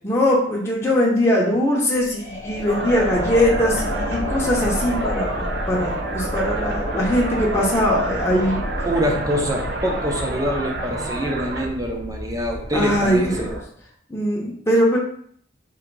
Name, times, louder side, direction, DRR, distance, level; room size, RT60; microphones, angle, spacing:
voice 1, 0.0-5.3 5.7-8.6 12.7-13.5 14.1-15.0, equal, 15° left, -5 dB, 0.8 m, -21 dB
sound 1, 2.0-11.3, left 2 dB, 50° left, 1.1 m, -31 dB
sound 2, 2.7-11.7, right 2 dB, 60° right, 0.7 m, -30 dB
sound 3, 3.1-13.6, right 1 dB, 40° right, 1.0 m, -34 dB
voice 2, 8.8-13.5, equal, 20° right, 1 dB, 0.7 m, -25 dB
3.9 x 2.7 x 4.6 m, 0.62 s
head